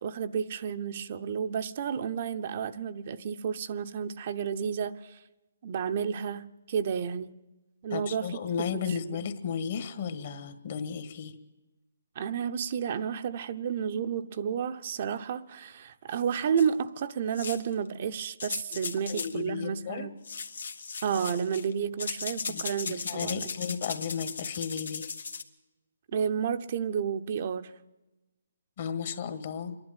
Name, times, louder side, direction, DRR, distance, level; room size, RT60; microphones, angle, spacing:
voice 1, 0.0-5.2 5.6-7.3 7.8-9.3 12.2-20.1 21.0-23.5 26.1-27.7, right 7 dB, 45° right, 0.8 m, -31 dB
voice 2, 7.9-11.3 19.1-20.1 22.4-25.1 28.8-29.8, left 7 dB, 50° left, 1.7 m, -34 dB
sound 1, 16.6-16.7 17.3-17.7 18.4-19.4 20.2-21.7 22.0-25.4, left 5 dB, 85° left, 1.7 m, -37 dB
26.0 x 11.5 x 9.1 m
hypercardioid pair, 155°, 0 cm